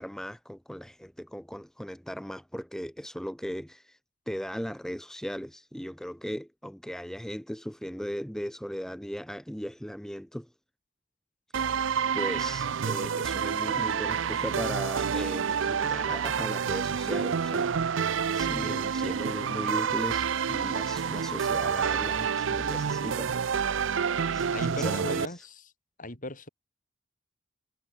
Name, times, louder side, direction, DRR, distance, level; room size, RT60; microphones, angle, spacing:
voice 1, 0.0-4.0 4.3-10.5 11.5-23.6 24.3-25.4, equal, 5° left, 1.2 m, -38 dB
sound 1, 11.5-25.3, right 7 dB, 70° right, 0.5 m, -28 dB
voice 2, 24.5-25.7 26.0-26.5, left 2 dB, 45° left, 5.3 m, -38 dB
head